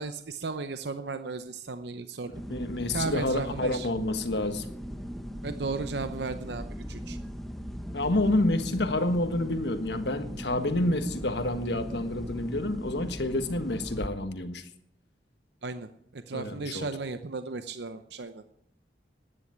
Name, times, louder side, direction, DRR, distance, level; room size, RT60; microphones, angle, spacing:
voice 1, 0.0-2.3 2.9-3.9 5.4-7.2 15.6-15.9 16.1-18.4, right 3 dB, 65° right, 0.8 m, -35 dB
sound 1, 2.3-14.1, equal, ahead, 1.1 m, -39 dB
voice 2, 2.5-4.7 7.9-14.6 16.3-16.9, left 1 dB, 70° left, 1.6 m, -28 dB
12.5 x 10.0 x 9.7 m
head